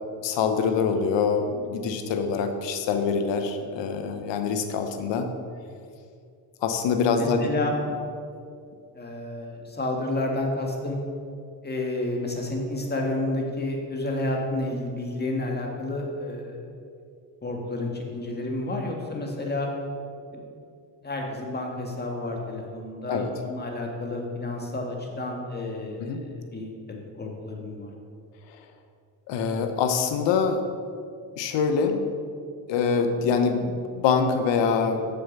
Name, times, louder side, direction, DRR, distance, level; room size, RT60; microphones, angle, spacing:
voice 1, 0.2-5.3 6.6-7.5 23.1-23.3 26.0-26.3 28.5-28.6 29.3-30.7 31.4-32.0 32.7-35.1, left 5 dB, 75° left, 7 dB, 1.0 m, -25 dB
voice 2, 7.2-7.7 8.9-11.0 11.6-16.6 17.4-19.7 20.3-20.4 21.0-26.7 27.2-27.9, left 2 dB, 20° left, 0 dB, 1.8 m, -30 dB
7.2 x 7.0 x 5.4 m, 2.4 s
supercardioid pair, 80°, 44 cm